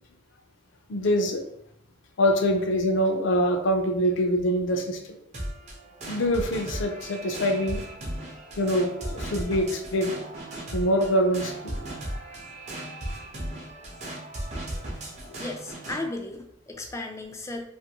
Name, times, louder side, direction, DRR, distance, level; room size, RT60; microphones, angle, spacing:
voice 1, 0.9-1.4 2.2-5.0 6.1-7.8 8.6-10.2 10.7-11.8 14.0-14.1, equal, 65° left, 4 dB, 0.5 m, -24 dB
sound 1, 5.3-16.0, right 1 dB, 35° right, 0.6 m, -36 dB
voice 2, 15.4-17.7, left 2 dB, 15° left, 3 dB, 0.3 m, -35 dB
2.6 x 2.5 x 2.8 m, 0.71 s
head